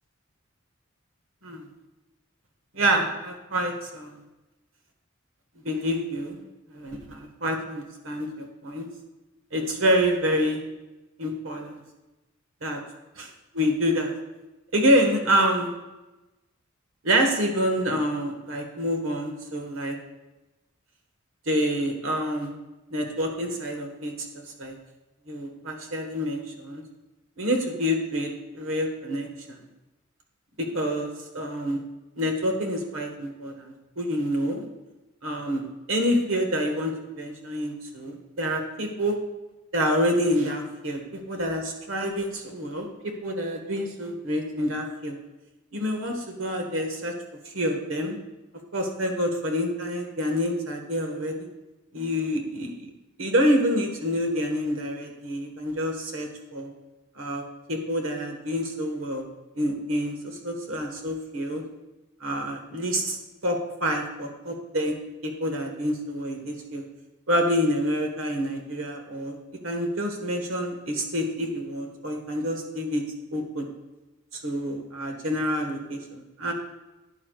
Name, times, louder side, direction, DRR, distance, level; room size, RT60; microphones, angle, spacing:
voice 1, 2.7-4.1 5.6-6.4 6.7-8.9 9.5-10.6 11.2-11.8 12.6-12.8 13.1-13.3 13.5-14.1 14.7-15.7 17.0-20.0 21.5-22.5 22.9-24.7 25.3-26.8 27.4-29.7 30.6-31.8 32.1-34.7 35.2-35.6 35.9-39.2 39.7-45.1 45.7-47.1 47.5-48.2 48.7-51.5 51.9-52.9 53.2-56.7 57.2-57.4 57.7-59.2 59.6-60.1 60.4-61.6 62.2-63.2 63.4-65.0 65.2-66.8 67.3-69.4 69.6-73.0 73.3-73.7 74.3-76.5, equal, 85° right, 3 dB, 1.5 m, -27 dB
11.0 x 9.8 x 2.4 m, 1.1 s
head